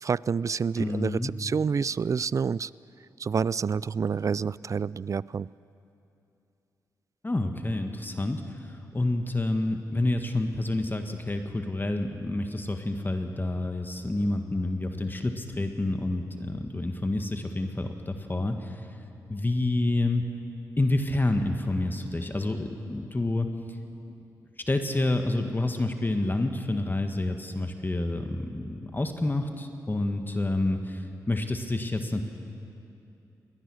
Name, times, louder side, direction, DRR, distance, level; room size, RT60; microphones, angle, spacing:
voice 1, 0.0-2.7 3.2-5.5, right 6 dB, 45° right, 21 dB, 0.4 m, -28 dB
voice 2, 0.8-1.3 7.2-18.8 19.3-20.3 20.8-23.5 24.7-32.2, left 2 dB, 25° left, 5 dB, 1.7 m, -28 dB
21.5 x 19.0 x 6.4 m, 2.8 s
supercardioid pair, 45°, 8 cm